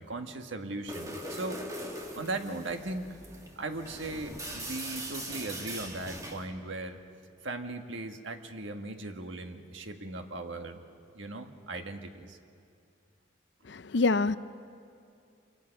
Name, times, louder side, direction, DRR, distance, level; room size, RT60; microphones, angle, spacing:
voice 1, 0.0-1.6 2.2-3.1 3.6-7.0 7.4-10.8 11.1-12.4, right 2 dB, 80° right, 5 dB, 1.5 m, -38 dB
sound 1, 0.9-6.5, right 1 dB, 15° right, 1.8 m, -41 dB
voice 2, 13.7-14.4, left 3 dB, 65° left, 15 dB, 0.5 m, -26 dB
26.5 x 22.5 x 5.9 m, 2.5 s
head